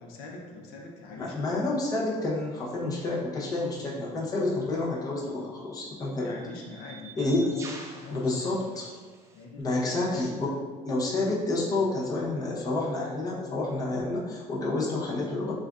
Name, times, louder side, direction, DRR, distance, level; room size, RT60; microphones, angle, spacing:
voice 1, 0.0-1.4 6.2-8.8 9.3-10.5 11.5-11.8, left 3 dB, 80° left, 0 dB, 0.7 m, -44 dB
voice 2, 1.2-6.4 7.2-7.5 8.1-8.9 9.6-10.6 10.8-15.6, left 2 dB, 25° left, -5 dB, 0.8 m, -29 dB
sound 1, 4.0-4.2 5.2-9.4, right 3 dB, 20° right, 0.4 m, -47 dB
6.5 x 2.4 x 2.4 m, 1.4 s
cardioid pair, 150°, 15 cm